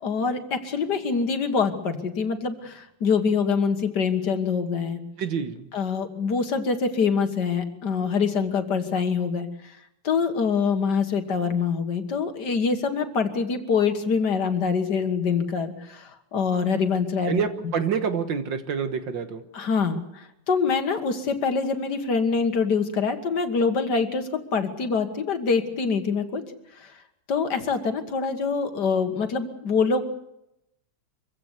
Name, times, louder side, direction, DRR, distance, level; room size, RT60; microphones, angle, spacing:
voice 1, 0.0-5.0 5.7-9.8 10.0-17.7 19.5-26.4 26.7-26.9 27.3-30.0, left 5 dB, 65° left, 8 dB, 2.2 m, -25 dB
voice 2, 5.2-5.6 17.3-19.4, right 7 dB, 80° right, 9 dB, 2.1 m, -27 dB
24.0 x 16.0 x 8.1 m, 0.85 s
omnidirectional pair, 2.0 m